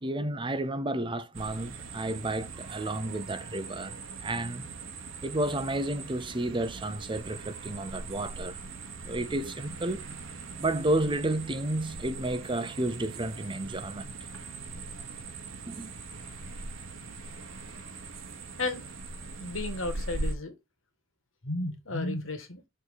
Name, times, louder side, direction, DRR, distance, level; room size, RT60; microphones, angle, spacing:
voice 1, 0.0-4.7 5.2-8.6 9.0-10.0 10.6-14.1 15.7-15.9, right 1 dB, 25° right, 0.7 m, -31 dB
sound 1, 1.3-20.4, right 3 dB, 80° right, 1.2 m, -41 dB
voice 2, 19.4-20.5 21.4-22.6, left 2 dB, 80° left, 1.7 m, -33 dB
6.4 x 3.8 x 4.7 m
head